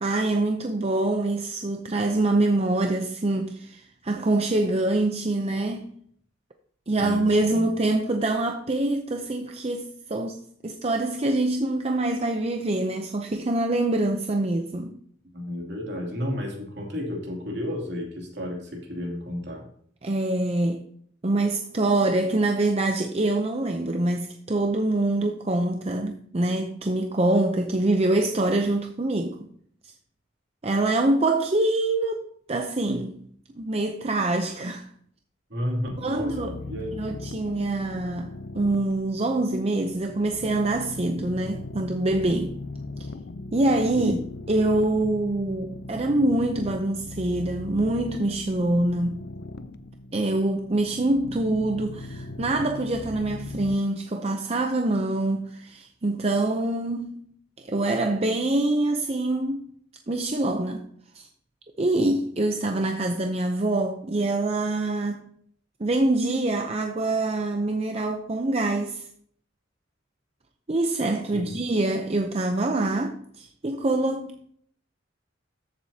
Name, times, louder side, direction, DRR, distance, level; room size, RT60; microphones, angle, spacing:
voice 1, 0.0-5.9 6.9-14.9 20.0-20.8 21.2-29.4 30.6-33.2 33.6-34.9 36.0-36.6 36.9-42.5 43.5-44.1 44.5-49.3 50.1-57.1 57.6-59.7 60.1-60.8 61.1-61.3 61.8-65.2 65.8-69.1 70.7-74.5, right 2 dB, 30° right, 0.6 m, -25 dB
voice 2, 7.0-7.6 15.3-19.7 35.5-37.1 43.9-44.2 71.3-71.6, left 1 dB, 60° right, 2.9 m, -32 dB
sound 1, 35.9-53.7, left 2 dB, 55° left, 0.6 m, -39 dB
14.0 x 7.6 x 2.8 m
head